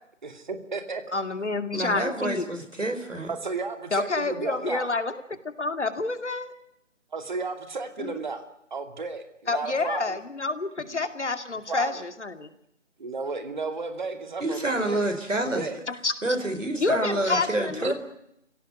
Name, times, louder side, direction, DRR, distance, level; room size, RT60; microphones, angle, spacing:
voice 1, 0.2-1.0 3.3-4.9 7.1-8.4 8.7-10.2 10.9-11.0 11.7-12.0 13.0-15.0 15.5-15.8 17.3-17.4 17.8-17.9, right 4 dB, 40° right, 7 dB, 2.6 m, -33 dB
voice 2, 1.1-2.5 3.9-5.2 5.4-6.5 8.0-8.1 9.5-12.5 15.9-16.1 16.8-17.9, left 3 dB, 65° left, 9 dB, 2.5 m, -28 dB
voice 3, 1.7-3.3 14.4-15.7 16.2-17.9, right 1 dB, 85° right, 7 dB, 5.4 m, -28 dB
26.0 x 17.0 x 9.4 m, 0.78 s
figure-of-eight pair, 165°, 37 cm